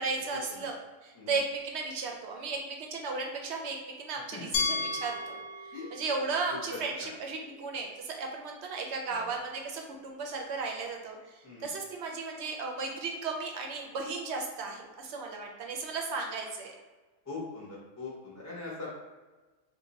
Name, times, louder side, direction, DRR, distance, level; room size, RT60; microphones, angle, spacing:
voice 1, 0.0-5.4 5.6-16.7, right 4 dB, 65° right, 1 dB, 0.7 m, -35 dB
voice 2, 4.3-5.0 5.7-6.0 6.5-7.1 9.1-9.3 11.4-11.7 17.2-18.9, left 3 dB, 20° left, -5 dB, 0.5 m, -42 dB
Glass, 4.5-7.4, left 4 dB, 65° left, 0.8 m, -35 dB
2.7 x 2.2 x 3.9 m, 1.2 s
omnidirectional pair, 1.4 m